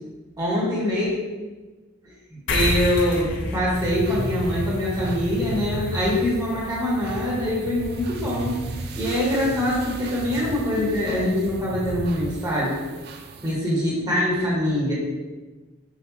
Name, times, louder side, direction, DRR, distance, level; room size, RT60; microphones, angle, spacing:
voice 1, 0.4-1.1 2.5-8.6 8.9-12.8 13.4-14.9, left 1 dB, 20° right, -7 dB, 1.3 m, -24 dB
sound 1, 2.5-9.3, left 2 dB, 60° left, 0.5 m, -32 dB
sound 2, 3.7-13.5, right 1 dB, 50° right, 0.4 m, -33 dB
5.9 x 2.5 x 2.8 m, 1.3 s
head